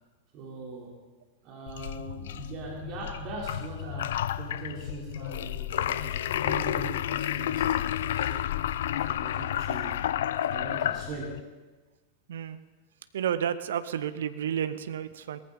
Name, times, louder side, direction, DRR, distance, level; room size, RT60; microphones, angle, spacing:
voice 1, 0.3-1.0 1.4-8.4 8.9-10.0 10.4-11.4, right 3 dB, 40° right, -2 dB, 3.3 m, -41 dB
sound 1, 1.7-11.4, left 11 dB, 60° left, 0.4 m, -31 dB
voice 2, 13.1-15.4, right 9 dB, 60° right, 13 dB, 0.7 m, -31 dB
18.5 x 14.0 x 3.9 m, 1.3 s
figure-of-eight pair, 90°, 0 cm